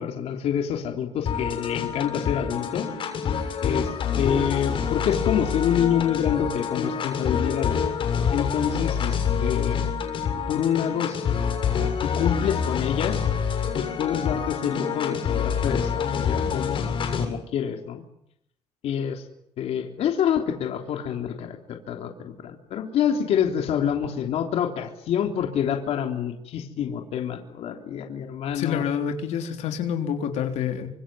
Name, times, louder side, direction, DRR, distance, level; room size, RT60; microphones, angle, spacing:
voice 1, 0.0-2.9 3.6-7.8 8.3-9.8 10.5-11.2 12.0-13.2 13.7-16.8 17.2-18.0 18.8-19.2 19.6-28.8, left 8 dB, 65° left, 3 dB, 3.5 m, -27 dB
sound 1, 1.3-17.3, left 7 dB, 50° left, 7.0 m, -26 dB
voice 2, 28.5-30.9, left 8 dB, 80° left, 4 dB, 3.7 m, -27 dB
27.5 x 26.0 x 7.8 m, 0.75 s
cardioid pair, 170°, 11 cm